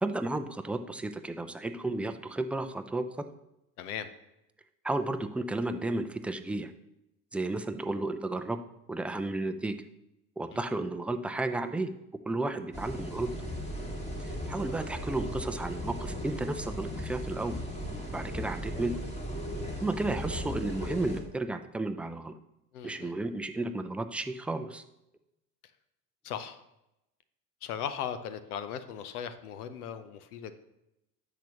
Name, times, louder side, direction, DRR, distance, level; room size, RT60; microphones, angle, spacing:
voice 1, 0.0-3.0 4.8-6.7 7.3-8.6 8.9-9.8 10.4-11.9 12.3-13.3 14.2-17.6 18.1-18.9 19.8-22.3 22.8-24.8, right 2 dB, 5° right, 8 dB, 0.4 m, -33 dB
voice 2, 3.8-4.1 10.5-10.6 22.7-23.1 26.2-26.6 27.6-30.5, left 8 dB, 75° left, 12 dB, 0.8 m, -38 dB
sound 1, 12.7-21.2, equal, 15° left, 2.1 m, -37 dB
10.0 x 7.0 x 2.9 m, 0.87 s
hypercardioid pair, 70°, 45 cm